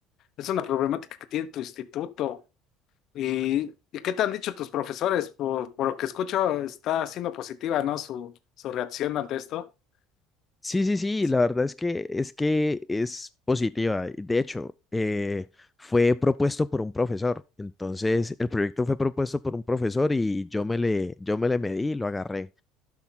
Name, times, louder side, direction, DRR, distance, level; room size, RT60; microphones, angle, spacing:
voice 1, 0.4-1.0 1.3-2.4 3.1-8.3 8.6-9.6, left 11 dB, 60° left, 1.0 m, -29 dB
voice 2, 10.6-15.5 15.8-22.6, left 2 dB, 15° left, 0.4 m, -26 dB
11.5 x 6.0 x 3.8 m
hypercardioid pair, 75°, 0 cm